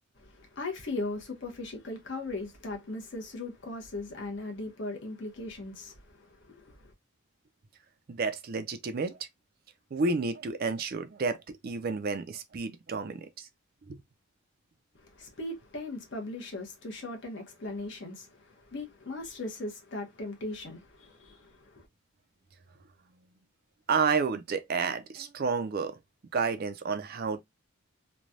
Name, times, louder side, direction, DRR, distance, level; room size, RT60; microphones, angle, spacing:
voice 1, 0.2-6.9 14.9-21.8, left 2 dB, 55° left, 0.9 m, -39 dB
voice 2, 8.1-9.3 9.9-11.4 11.6-13.5 13.9-14.0 23.9-26.0 26.3-27.4, right 4 dB, 45° right, 0.4 m, -30 dB
3.1 x 2.2 x 2.5 m
head